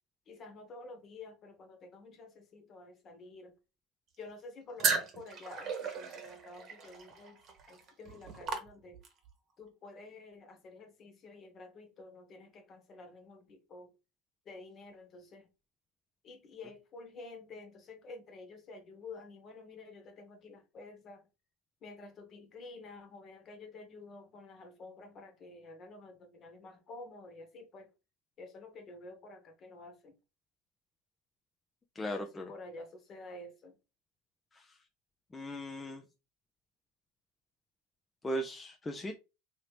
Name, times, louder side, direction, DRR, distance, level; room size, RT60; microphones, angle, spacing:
voice 1, 0.3-3.5 4.2-7.4 7.7-9.0 9.6-13.9 14.4-15.5 16.2-21.2 21.8-27.9 28.4-30.1 32.0-33.7, left 3 dB, 40° left, 1.1 m, -50 dB
sound 1, 4.8-9.3, right 5 dB, 45° right, 1.0 m, -36 dB
voice 2, 32.0-32.5 34.5-34.7 35.3-36.0 38.2-39.1, equal, 15° left, 0.4 m, -37 dB
2.9 x 2.8 x 3.2 m
hypercardioid pair, 100°, 0 cm